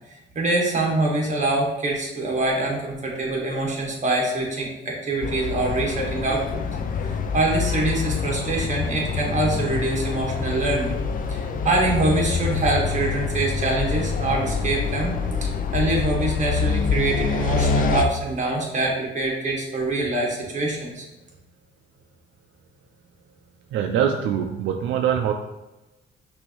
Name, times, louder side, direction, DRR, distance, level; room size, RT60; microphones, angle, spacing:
voice 1, 0.3-6.7 7.0-11.0 11.3-15.2 15.4-21.0, right 2 dB, 40° right, -1 dB, 1.5 m, -24 dB
sound 1, 5.2-18.0, left 5 dB, 45° left, 0.4 m, -26 dB
voice 2, 23.7-25.3, right 8 dB, 80° right, 4 dB, 0.4 m, -23 dB
6.0 x 2.7 x 3.0 m, 1.0 s
cardioid pair, 90°, 20 cm